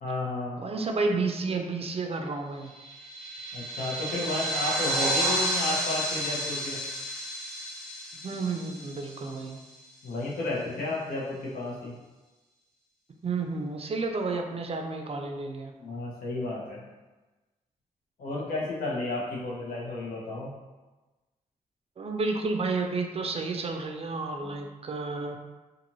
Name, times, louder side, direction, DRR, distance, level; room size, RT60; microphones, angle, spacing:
voice 1, 0.0-0.6 3.5-6.8 10.0-11.9 15.8-16.8 18.2-20.5 24.4-24.5, left 2 dB, 85° left, -6 dB, 0.9 m, -32 dB
voice 2, 0.6-2.7 8.1-9.6 13.2-15.7 22.0-25.4, right 3 dB, 45° right, 3 dB, 0.4 m, -31 dB
sound 1, 2.8-9.6, right 1 dB, 5° left, 0.6 m, -31 dB
2.5 x 2.5 x 3.0 m, 1.2 s
cardioid pair, 70°, 15 cm